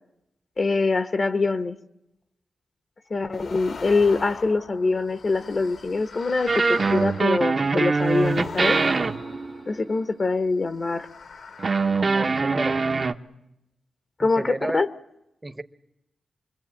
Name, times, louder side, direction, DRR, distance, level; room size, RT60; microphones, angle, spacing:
voice 1, 0.6-1.8 3.1-6.6 6.9-8.8 9.7-11.1 14.2-14.9, left 3 dB, 40° left, 11 dB, 1.1 m, -24 dB
sound 1, 3.3-10.1 10.7-12.6, left 5 dB, 70° left, 1.9 m, -42 dB
sound 2, 6.5-9.8 11.6-13.1, right 4 dB, 40° right, 1.0 m, -23 dB
voice 2, 11.9-12.8 14.2-14.8 15.4-15.6, right 2 dB, 15° right, 13 dB, 1.0 m, -32 dB
26.5 x 22.0 x 8.7 m, 0.85 s
wide cardioid pair, 120°, 0 cm